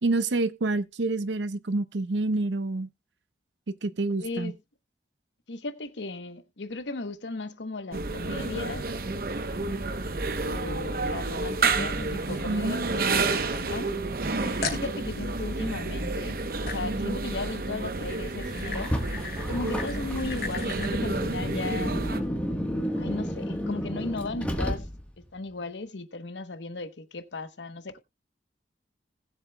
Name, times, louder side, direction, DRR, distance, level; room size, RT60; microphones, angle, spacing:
voice 1, 0.0-2.9 3.7-4.5 12.5-13.2, right 2 dB, 85° right, 0.6 m, -28 dB
voice 2, 4.2-4.6 5.5-8.9 10.4-13.9 14.4-18.9 19.5-22.0 23.0-24.9 25.3-28.0, left 3 dB, 90° left, 1.0 m, -36 dB
sound 1, 7.9-22.2, right 3 dB, 55° right, 0.8 m, -30 dB
sound 2, 11.6-13.6 14.1-14.2 14.6-14.9 16.7-17.0 17.8-21.0, left 4 dB, 60° left, 2.6 m, -39 dB
Car, 18.7-25.2, equal, 10° left, 1.2 m, -32 dB
19.5 x 7.3 x 2.2 m
head